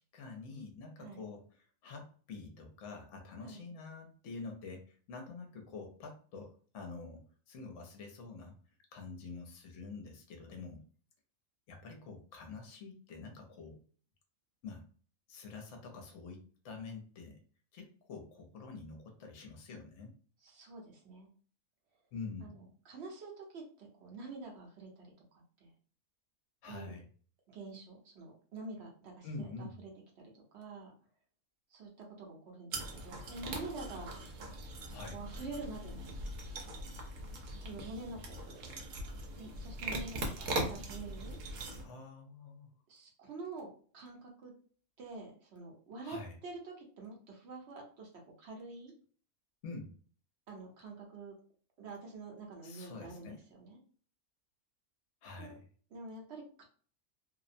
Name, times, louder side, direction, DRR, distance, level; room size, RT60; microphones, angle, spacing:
voice 1, 0.0-8.6 8.9-10.8 11.7-13.8 14.6-14.9 15.3-17.4 17.7-20.1 22.1-22.6 26.6-27.1 29.2-29.8 34.9-35.2 41.8-42.7 46.0-46.3 49.6-49.9 52.6-53.4 55.2-55.6, left 4 dB, 65° left, 3 dB, 0.9 m, -47 dB
voice 2, 20.4-21.3 22.4-25.7 26.7-26.9 27.5-29.7 30.2-30.9 31.7-34.1 35.1-36.2 37.6-38.7 39.3-41.4 42.9-44.5 45.0-48.1 48.4-48.9 50.5-51.4 51.8-53.8 55.4-55.5 55.9-56.6, right 3 dB, 55° right, 0 dB, 0.9 m, -47 dB
sound 1, 32.7-41.8, right 1 dB, 80° right, 1.1 m, -41 dB
2.7 x 2.0 x 2.5 m, 0.43 s
omnidirectional pair, 1.5 m